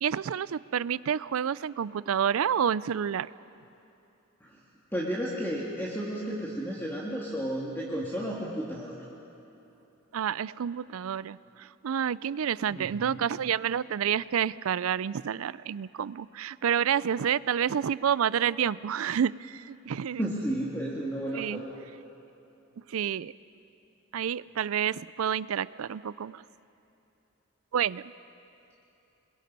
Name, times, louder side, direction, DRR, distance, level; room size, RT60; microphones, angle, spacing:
voice 1, 0.0-3.3 10.1-20.2 21.3-21.6 22.9-23.3 24.1-26.4 27.7-28.1, right 8 dB, 85° right, 19 dB, 0.4 m, -29 dB
voice 2, 4.9-8.9 12.7-13.3 20.2-21.8, equal, 10° left, -5 dB, 1.9 m, -33 dB
27.5 x 21.5 x 5.4 m, 2.8 s
head